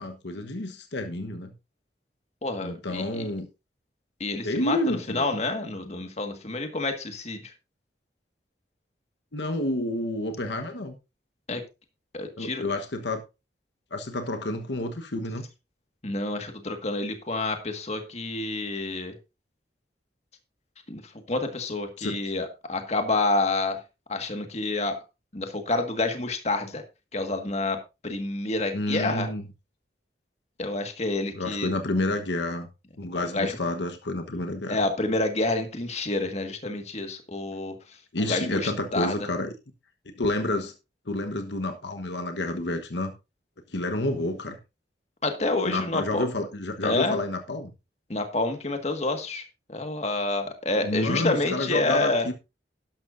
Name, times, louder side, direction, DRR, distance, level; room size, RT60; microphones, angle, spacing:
voice 1, 0.0-1.5 2.6-3.5 4.4-5.3 9.3-10.9 12.4-13.2 13.9-15.4 22.0-22.2 28.7-29.4 31.3-32.7 33.0-34.8 38.1-39.5 40.0-40.7 41.1-43.1 43.7-44.6 45.6-47.7 50.8-52.3, left 1 dB, 75° left, 1.2 m, -29 dB
voice 2, 2.4-3.2 4.2-7.5 11.5-11.6 12.1-12.7 16.0-19.1 20.9-21.0 21.3-23.8 24.1-25.0 25.3-26.8 27.1-27.8 28.0-29.3 30.6-31.7 33.3-33.6 34.7-37.7 38.2-39.1 45.2-46.2 46.8-47.2 48.1-52.3, left 2 dB, 40° left, 1.7 m, -28 dB
12.0 x 11.5 x 2.6 m
head